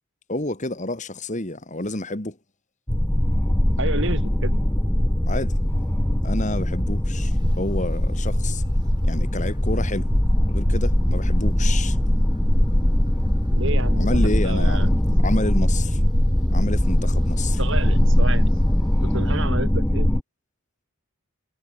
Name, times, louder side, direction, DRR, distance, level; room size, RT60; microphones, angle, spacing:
voice 1, 0.3-2.4 5.3-5.6 6.2-8.6 9.0-10.1 10.5-12.0 14.0-14.9 15.2-16.0 16.5-17.6, left 1 dB, 35° left, 2.7 m, -29 dB
sound 1, 2.9-20.2, left 1 dB, 10° left, 0.6 m, -20 dB
sound 2, 3.7-19.5, equal, 20° right, 5.9 m, -46 dB
voice 2, 3.8-4.6 13.6-14.2 14.4-14.9 17.6-18.5 19.0-20.1, right 2 dB, 55° right, 4.6 m, -30 dB
head